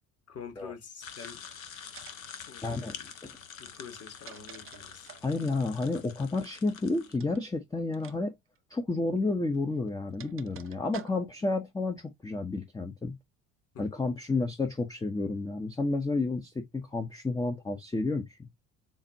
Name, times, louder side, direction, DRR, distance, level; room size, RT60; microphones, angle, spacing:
voice 1, 0.3-1.4 2.5-3.1 3.6-5.1 13.7-13.8, left 6 dB, 35° left, 1.7 m, -46 dB
sound 1, 1.0-7.2, left 7 dB, 80° left, 0.8 m, -46 dB
sound 2, 1.2-1.6 1.9-2.4 3.8-5.3 7.1-7.4 7.9-8.2 8.5-8.6 9.5-11.5, right 11 dB, 35° right, 0.7 m, -50 dB
voice 2, 2.6-2.9 3.2-3.3 5.2-8.3 8.7-13.1 13.8-18.5, left 3 dB, 10° left, 0.8 m, -31 dB
7.2 x 2.5 x 2.7 m
figure-of-eight pair, 60°, 40 cm